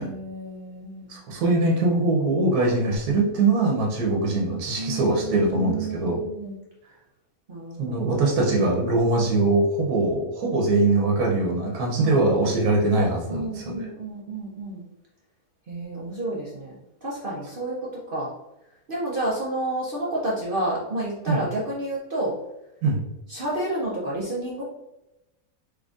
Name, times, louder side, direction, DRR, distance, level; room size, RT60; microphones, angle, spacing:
voice 1, 0.0-1.1 4.8-6.6 7.5-8.2 12.0-12.2 13.3-14.8 15.7-17.8 18.1-18.3 18.9-22.3 23.3-24.6, right 1 dB, 50° right, -6 dB, 0.7 m, -30 dB
voice 2, 1.1-6.2 7.8-13.9 21.3-21.4 22.8-23.0, right 2 dB, 85° right, -1 dB, 1.3 m, -22 dB
3.8 x 3.1 x 2.4 m, 0.92 s
omnidirectional pair, 1.6 m